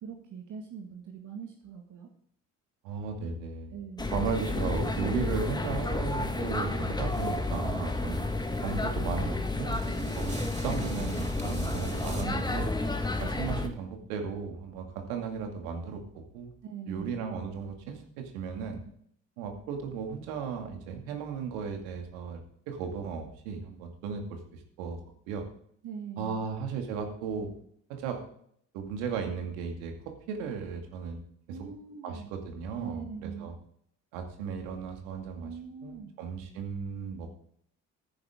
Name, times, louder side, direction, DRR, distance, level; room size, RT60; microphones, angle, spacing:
voice 1, 0.0-2.1 3.7-4.1 6.2-6.5 9.8-10.5 16.6-17.1 25.8-26.4 31.5-32.3 32.8-33.5 35.4-36.1, right 6 dB, 50° right, 2 dB, 1.8 m, -42 dB
voice 2, 2.8-3.7 4.1-8.3 8.6-9.8 10.1-12.7 13.2-16.5 16.9-18.8 19.4-25.0 25.3-25.4 26.2-27.5 27.9-28.2 28.7-31.2 31.5-31.6 32.0-33.6 34.1-37.3, right 6 dB, 70° right, 4 dB, 2.4 m, -35 dB
sound 1, 4.0-13.7, left 2 dB, 10° left, 1.7 m, -31 dB
sound 2, 7.1-12.2, right 2 dB, 20° right, 4.9 m, -49 dB
13.5 x 10.0 x 3.7 m, 0.64 s
figure-of-eight pair, 55°, 39 cm